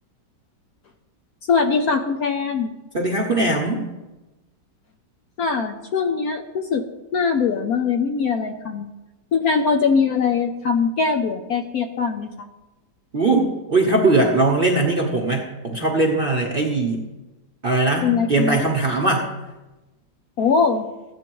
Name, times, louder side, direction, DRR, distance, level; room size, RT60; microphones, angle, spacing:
voice 1, 1.5-2.7 5.4-6.9 7.1-8.9 9.3-12.5 18.0-18.6 20.4-20.9, left 5 dB, 65° left, 6 dB, 1.0 m, -21 dB
voice 2, 2.9-3.8 13.1-17.0 17.6-19.3, right 2 dB, 40° right, 0 dB, 0.9 m, -20 dB
14.5 x 9.3 x 3.0 m, 1.1 s
omnidirectional pair, 2.0 m